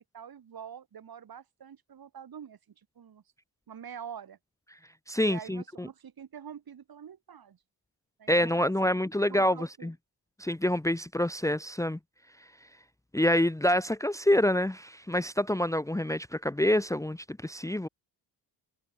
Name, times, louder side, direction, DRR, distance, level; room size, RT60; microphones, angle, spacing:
voice 1, 0.1-2.6 3.0-3.2 3.7-4.4 5.2-7.6 8.2-8.9 9.3-9.9, right 8 dB, 55° right, 3.6 m, -45 dB
voice 2, 5.1-5.9 8.3-9.9 10.4-12.0 13.1-17.9, left 1 dB, 5° left, 1.0 m, -27 dB
cardioid pair, 75°, 43 cm